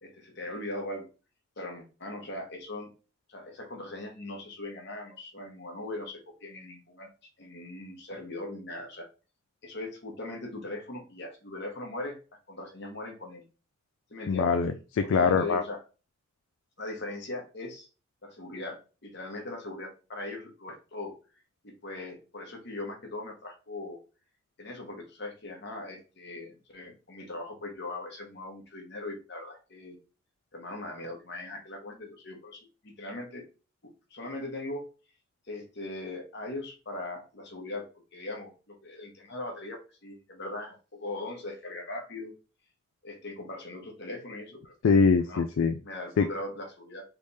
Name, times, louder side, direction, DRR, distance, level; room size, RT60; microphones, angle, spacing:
voice 1, 0.0-1.1 1.6-2.9 3.3-7.1 7.4-9.1 9.6-12.2 12.5-13.4 14.1-14.5 15.0-15.8 16.8-17.9 18.2-21.1 21.6-24.0 24.6-30.0 30.5-33.4 34.1-34.9 35.5-37.8 38.1-42.3 43.0-44.7 45.3-45.4 45.8-47.0, left 2 dB, 55° left, 2 dB, 1.2 m, -40 dB
voice 2, 14.3-15.6 44.8-45.7 46.2-46.3, left 5 dB, 75° left, 8 dB, 0.3 m, -23 dB
3.4 x 3.4 x 4.1 m, 0.34 s
head